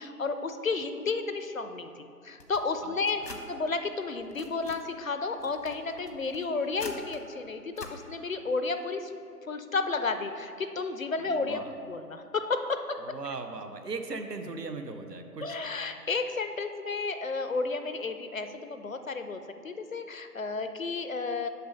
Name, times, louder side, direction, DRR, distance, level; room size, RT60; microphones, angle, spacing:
voice 1, 0.0-3.2 3.5-9.1 9.5-13.0 15.4-21.5, left 4 dB, 60° left, 8 dB, 0.5 m, -32 dB
sound 1, 2.4-3.4 4.0-4.8 5.3-7.2 7.7-7.9, left 2 dB, 90° left, 1.1 m, -46 dB
voice 2, 11.2-11.7 13.0-15.6, right 3 dB, 80° right, 7 dB, 0.8 m, -38 dB
6.8 x 5.2 x 5.3 m, 2.4 s
figure-of-eight pair, 160°, 48 cm